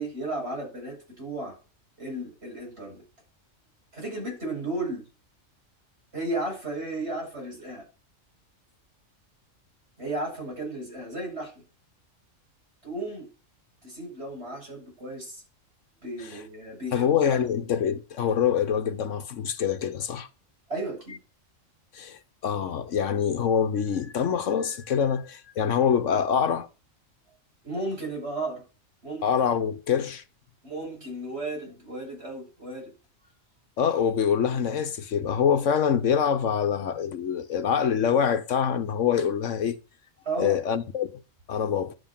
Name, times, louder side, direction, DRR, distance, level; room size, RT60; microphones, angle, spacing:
voice 1, 0.0-1.5 2.0-3.0 3.9-5.0 6.1-7.9 10.0-11.5 12.8-13.3 13.8-15.4 16.0-17.5 20.7-21.2 27.6-28.6 29.0-29.3 30.6-32.9 40.2-40.6, right 2 dB, 50° right, 8.0 m, -34 dB
voice 2, 16.9-20.3 21.9-26.7 29.2-30.2 33.8-39.8 40.4-41.2 41.5-41.9, left 7 dB, 70° left, 1.2 m, -25 dB
11.0 x 7.9 x 7.3 m
omnidirectional pair, 1.4 m